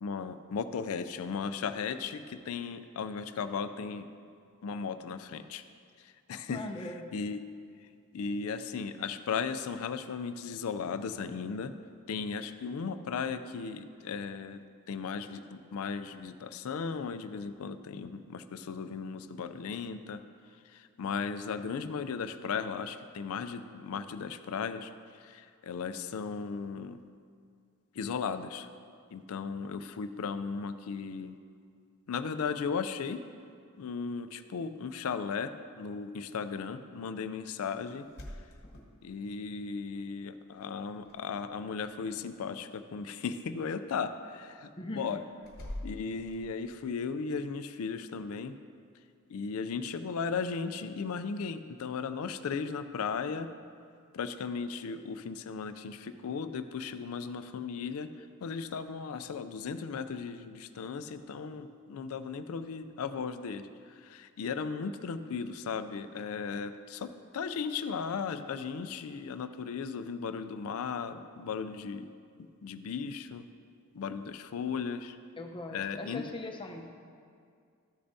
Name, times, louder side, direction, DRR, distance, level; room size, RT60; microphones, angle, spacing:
voice 1, 0.0-4.1 4.6-5.6 6.0-6.6 7.1-7.4 8.1-11.7 12.1-20.2 20.6-27.0 27.9-28.7 29.1-31.3 32.1-33.2 33.8-38.1 39.0-45.2 45.8-48.5 49.3-53.5 54.1-72.1 72.6-73.4 73.9-75.2 75.7-76.3, left 5 dB, 70° left, 10 dB, 0.4 m, -36 dB
voice 2, 6.5-7.1 44.8-45.2 75.4-76.9, left 2 dB, 20° left, 2 dB, 0.7 m, -40 dB
sound 1, 37.9-39.5 40.6-41.2 41.4-42.0 45.4-46.8, left 1 dB, 45° left, 1.2 m, -45 dB
13.0 x 6.8 x 2.7 m, 2.2 s
head